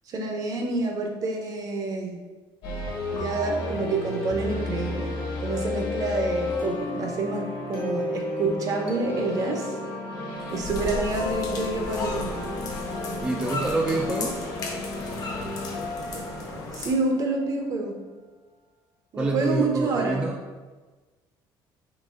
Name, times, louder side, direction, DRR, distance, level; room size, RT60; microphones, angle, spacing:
voice 1, 0.1-2.2 3.1-5.1 5.4-9.7 10.5-12.3 16.7-18.0 19.1-20.2, right 3 dB, 45° right, 2 dB, 0.7 m, -28 dB
sound 1, 2.6-17.5, left 2 dB, 65° left, 1.4 m, -32 dB
sound 2, 10.4-16.9, left 2 dB, 45° left, 0.7 m, -35 dB
voice 2, 13.2-14.4 19.2-20.4, right 2 dB, 10° right, 0 dB, 0.3 m, -26 dB
3.9 x 2.9 x 3.6 m, 1.3 s
cardioid pair, 130°, 9 cm